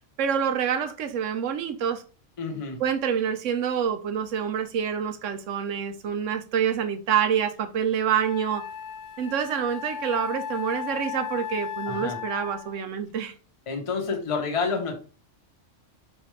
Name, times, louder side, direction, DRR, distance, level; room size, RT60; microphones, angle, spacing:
voice 1, 0.2-2.0 2.8-8.6 9.2-13.3, right 8 dB, 85° right, 1.0 m, -27 dB
voice 2, 2.4-2.8 11.9-12.2 13.7-15.0, left 4 dB, 30° left, 0.8 m, -29 dB
Wind instrument woodwind instrument, 7.5-7.6 8.1-12.8, left 8 dB, 65° left, 0.8 m, -35 dB
4.1 x 3.4 x 3.1 m
omnidirectional pair, 1.3 m